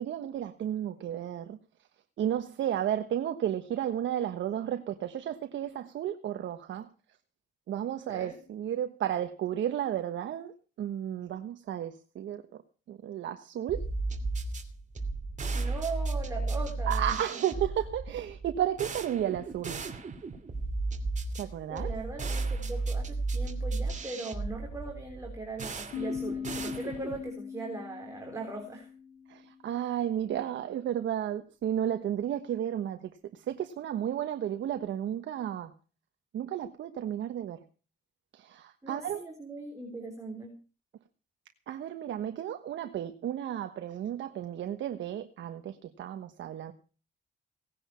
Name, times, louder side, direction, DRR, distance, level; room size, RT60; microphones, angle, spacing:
voice 1, 0.0-1.6 2.2-6.9 7.7-12.4 12.9-13.8 16.9-19.8 21.4-21.9 29.3-35.7 36.3-37.6 38.3-39.2 41.7-46.7, right 10 dB, 70° right, 1.3 m, -33 dB
voice 2, 8.1-8.4 15.5-17.2 19.3-19.4 21.7-28.9 38.8-40.6, right 2 dB, 15° right, 3.7 m, -40 dB
sound 1, 13.7-27.3, right 3 dB, 40° right, 2.8 m, -34 dB
sound 2, 25.9-29.5, left 7 dB, 70° left, 3.8 m, -39 dB
18.0 x 10.0 x 5.6 m
cardioid pair, 90°, 20 cm